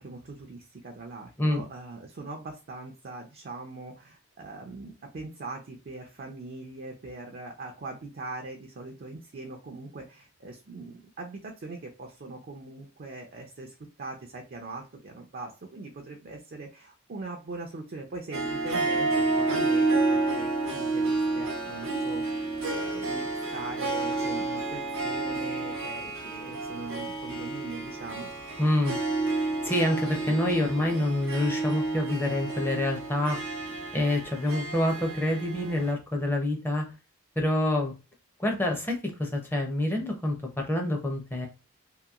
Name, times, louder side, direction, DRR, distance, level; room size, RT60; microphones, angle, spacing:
voice 1, 0.0-28.3, right 3 dB, 45° right, 2 dB, 0.4 m, -41 dB
Harp, 18.3-35.9, right 3 dB, 75° right, 0.9 m, -30 dB
voice 2, 28.6-29.0 29.3-33.4 33.9-36.9 37.4-37.9 38.4-41.5, left 1 dB, 10° left, 2 dB, 0.6 m, -27 dB
2.8 x 2.7 x 2.4 m, 0.30 s
head